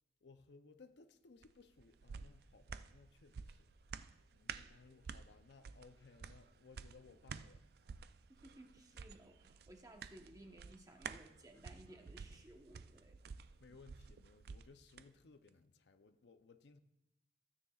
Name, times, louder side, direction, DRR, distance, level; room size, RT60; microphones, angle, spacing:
voice 1, 0.2-3.7 4.3-7.8 13.6-16.8, left 4 dB, 65° left, 0.6 m, -62 dB
sound 1, 1.4-15.1 15.5-15.6, right 5 dB, 55° right, 0.3 m, -52 dB
voice 2, 8.3-13.2, right 1 dB, 20° right, 1.0 m, -59 dB
15.0 x 9.7 x 2.4 m
head